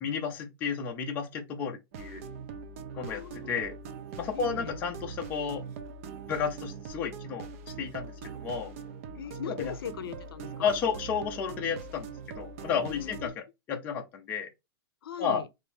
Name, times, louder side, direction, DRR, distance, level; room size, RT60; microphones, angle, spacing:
voice 1, 0.0-2.2 3.0-3.8 4.2-5.6 6.3-7.5 7.8-8.7 9.5-9.7 10.6-14.5 15.2-15.4, left 6 dB, 15° left, 0.5 m, -32 dB
sound 1, 1.9-13.3, right 5 dB, 35° right, 0.5 m, -42 dB
voice 2, 2.9-3.6 4.3-4.7 9.1-10.7 13.0-13.3 15.0-15.5, left 9 dB, 65° left, 0.6 m, -40 dB
4.4 x 2.6 x 3.4 m
supercardioid pair, 175°, 13 cm